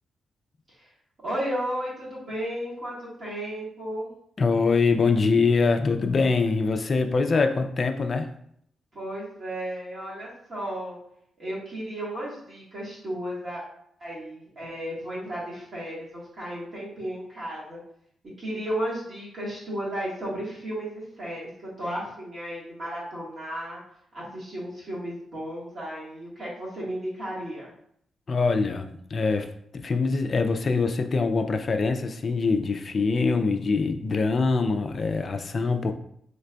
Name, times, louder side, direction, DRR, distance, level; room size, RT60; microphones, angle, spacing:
voice 1, 1.2-4.1 8.9-11.0 11.4-13.6 14.0-17.8 18.4-23.8 24.1-27.7, right 1 dB, 40° right, -7 dB, 1.4 m, -34 dB
voice 2, 4.4-8.3 28.3-35.9, left 4 dB, 35° left, 6 dB, 0.3 m, -24 dB
3.8 x 3.2 x 2.2 m, 0.69 s
wide cardioid pair, 140°, 0 cm